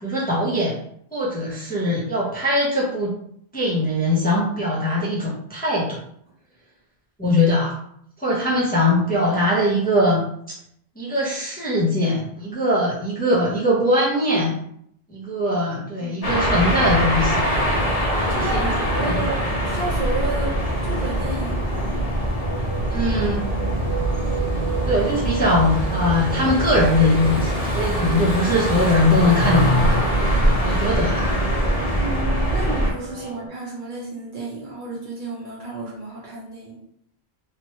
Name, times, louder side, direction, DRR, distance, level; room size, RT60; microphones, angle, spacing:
voice 1, 0.0-0.8 1.1-3.1 3.5-6.0 7.2-7.8 8.2-10.2 11.0-14.6 15.1-17.5 18.2-18.7 19.0-19.2 22.9-23.4 24.9-30.0 30.6-31.3, left 1 dB, 10° left, -6 dB, 0.6 m, -21 dB
voice 2, 8.3-8.6 16.0-16.1 18.3-20.6 20.9-21.9 31.9-36.8, right 2 dB, 55° right, -4 dB, 0.9 m, -32 dB
sound 1, 16.2-32.9, equal, 40° left, 0.8 m, -23 dB
sound 2, 22.4-33.5, right 5 dB, 90° right, 1.0 m, -35 dB
2.9 x 2.2 x 3.0 m, 0.70 s
omnidirectional pair, 1.0 m